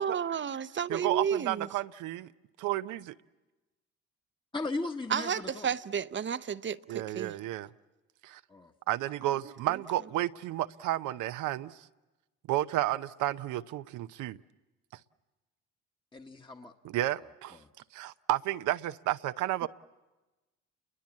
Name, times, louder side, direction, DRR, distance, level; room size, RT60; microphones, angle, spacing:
voice 1, 0.0-1.7 5.1-7.3 19.6-19.7, right 8 dB, 35° right, 0.8 m, -32 dB
voice 2, 0.9-2.3 2.6-3.1 6.9-7.7 8.2-8.4 8.9-11.8 12.5-14.4 16.8-17.6 17.9-19.7, right 14 dB, 70° right, 0.8 m, -32 dB
voice 3, 4.5-5.7 8.5-8.7 16.1-16.7 17.5-17.7, left 3 dB, 15° left, 1.4 m, -37 dB
29.5 x 22.5 x 7.4 m
supercardioid pair, 65°, 32 cm